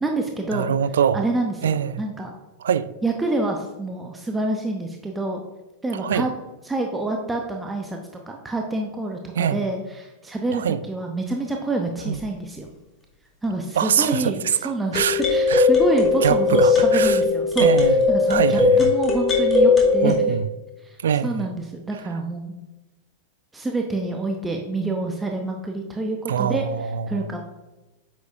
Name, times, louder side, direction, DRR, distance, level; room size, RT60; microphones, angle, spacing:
voice 1, 0.0-0.7 1.1-2.3 3.0-5.4 5.8-6.3 6.6-8.0 8.3-12.7 13.4-17.7 18.1-20.3 20.8-21.0 21.2-22.6 23.5-26.6 27.1-27.4, right 2 dB, 10° right, 0.8 m, -27 dB
voice 2, 0.5-1.3 1.6-2.0 2.6-2.9 5.9-6.3 9.4-9.6 10.5-10.8 12.1-12.2 13.8-15.2 15.5-15.7 16.2-17.2 17.6-18.0 18.3-18.9 20.0-20.4 21.0-21.5 26.3-27.3, right 8 dB, 65° right, 0.3 m, -23 dB
sound 1, 12.2-12.3 15.0-20.2, left 4 dB, 20° left, 1.9 m, -18 dB
9.3 x 6.4 x 2.6 m
figure-of-eight pair, 90°, 0 cm